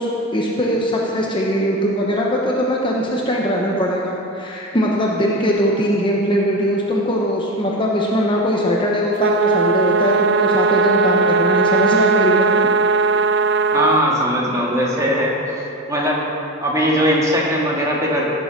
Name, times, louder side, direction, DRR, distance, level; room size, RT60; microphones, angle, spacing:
voice 1, 0.0-12.5, equal, 25° left, -2 dB, 1.0 m, -20 dB
sound 1, 9.2-14.0, right 4 dB, 55° right, 0.4 m, -17 dB
voice 2, 13.7-15.4 15.9-16.2 16.6-18.3, equal, 15° right, -3 dB, 1.9 m, -19 dB
15.5 x 7.0 x 6.0 m, 2.8 s
head